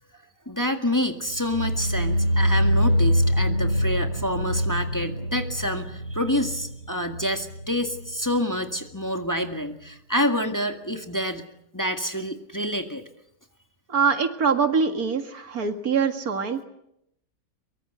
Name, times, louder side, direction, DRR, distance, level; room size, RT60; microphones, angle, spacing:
voice 1, 0.5-11.4 11.7-13.0, equal, 10° left, 5 dB, 1.8 m, -27 dB
sound 1, 1.3-8.4 8.7-9.1 9.5-9.6, equal, 65° left, 5.5 m, -25 dB
voice 2, 13.9-16.7, right 5 dB, 75° right, 7 dB, 2.4 m, -24 dB
24.0 x 23.5 x 8.0 m, 0.78 s
omnidirectional pair, 1.6 m